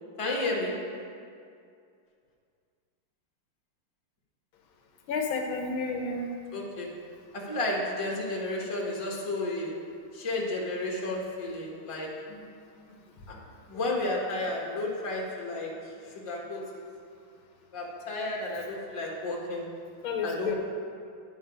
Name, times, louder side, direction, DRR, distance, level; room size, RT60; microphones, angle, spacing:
voice 1, 0.2-0.8 6.5-7.0 7.3-9.8 10.1-12.2 13.3-13.4 13.7-16.8 17.7-19.7 20.2-20.5, left 2 dB, 20° left, -3 dB, 1.1 m, -32 dB
voice 2, 5.1-6.3 12.3-12.4 20.0-20.5, left 4 dB, 80° left, 3 dB, 1.7 m, -31 dB
9.9 x 5.7 x 5.2 m, 2.3 s
omnidirectional pair, 2.2 m